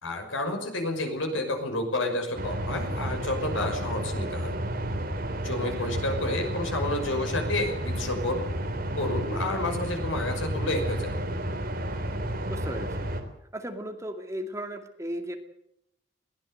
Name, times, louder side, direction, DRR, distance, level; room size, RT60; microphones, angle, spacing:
voice 1, 0.0-4.5 5.4-8.4 9.0-11.1, left 2 dB, 85° left, 5 dB, 6.0 m, -30 dB
sound 1, 2.3-13.2, right 1 dB, 50° right, 3.4 m, -31 dB
voice 2, 5.6-5.9 12.5-13.1 13.5-15.4, equal, 15° right, 5 dB, 2.3 m, -36 dB
21.5 x 16.5 x 8.0 m, 0.77 s
head